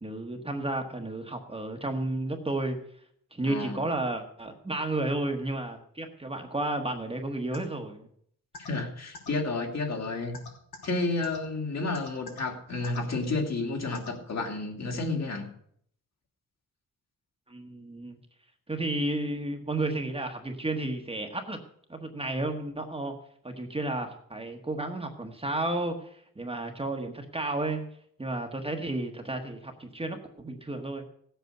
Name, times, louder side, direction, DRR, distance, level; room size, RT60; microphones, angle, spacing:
voice 1, 0.0-2.8 3.3-8.1 17.5-18.2 18.7-21.6 21.9-23.1 23.4-27.9 28.2-31.1, right 2 dB, 15° right, 3 dB, 1.4 m, -32 dB
voice 2, 3.4-3.8 8.6-10.4 10.8-15.5, left 3 dB, 45° left, 3 dB, 2.6 m, -31 dB
sound 1, 7.5-7.6 8.5-8.7 9.1-9.3 10.3-10.9 11.2-11.4 11.9-12.4 12.8-13.0 13.9-14.1, left 3 dB, 85° left, 4.6 m, -41 dB
17.0 x 8.1 x 6.8 m, 0.66 s
wide cardioid pair, 145°, 35 cm